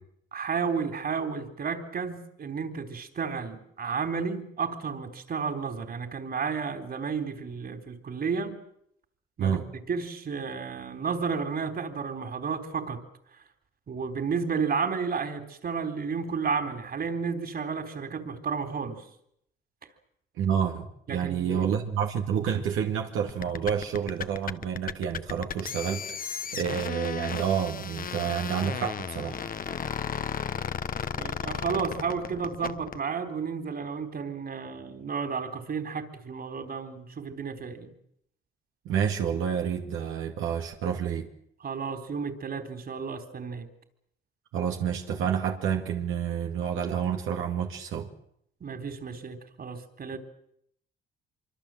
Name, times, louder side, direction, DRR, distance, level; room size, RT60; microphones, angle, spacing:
voice 1, 0.3-8.5 9.4-13.0 13.3-13.4 13.9-19.0 21.1-21.7 31.1-37.9 41.6-43.7 48.6-50.2, right 5 dB, 50° right, 8 dB, 3.8 m, -32 dB
voice 2, 20.4-29.4 38.9-41.3 44.5-48.1, right 8 dB, 85° right, 3 dB, 2.3 m, -29 dB
sound 1, 23.3-33.0, left 7 dB, 45° left, 1.1 m, -34 dB
25.0 x 24.5 x 7.8 m, 0.72 s
cardioid pair, 90°, 20 cm